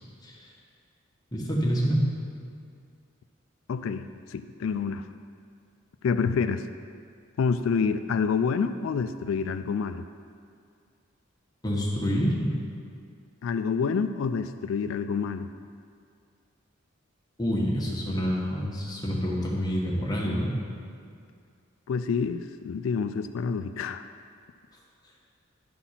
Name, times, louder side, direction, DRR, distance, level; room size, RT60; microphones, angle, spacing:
voice 1, 1.3-2.1 11.6-12.5 17.4-20.5, equal, 20° left, -4 dB, 1.2 m, -27 dB
voice 2, 3.7-5.0 6.0-6.7 7.4-10.0 13.4-15.5 21.9-24.0, left 5 dB, 75° left, 11 dB, 0.3 m, -28 dB
11.0 x 4.1 x 5.7 m, 2.3 s
head